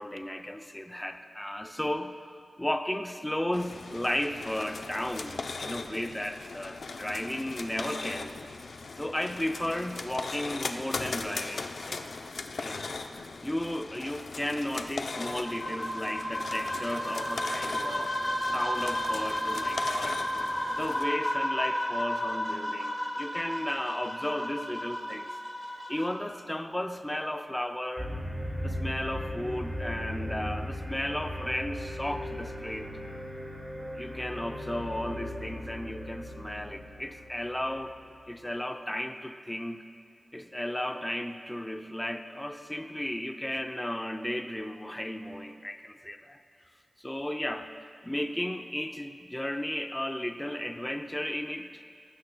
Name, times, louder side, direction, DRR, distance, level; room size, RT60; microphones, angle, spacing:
voice 1, 0.0-8.3 9.0-12.1 12.6-18.2 18.5-20.2 20.7-25.3 25.9-28.1 28.6-33.0 33.9-37.9 38.3-39.8 40.3-46.4 47.0-47.7 48.0-51.7, left 1 dB, 10° left, 6 dB, 0.5 m, -34 dB
sound 1, 3.5-21.1, left 4 dB, 80° left, 0.6 m, -39 dB
sound 2, 15.1-26.1, equal, 30° left, 3.7 m, -32 dB
sound 3, 28.0-38.3, equal, 30° right, 2.6 m, -38 dB
19.0 x 15.0 x 2.3 m, 2.3 s
wide cardioid pair, 80°, 0 cm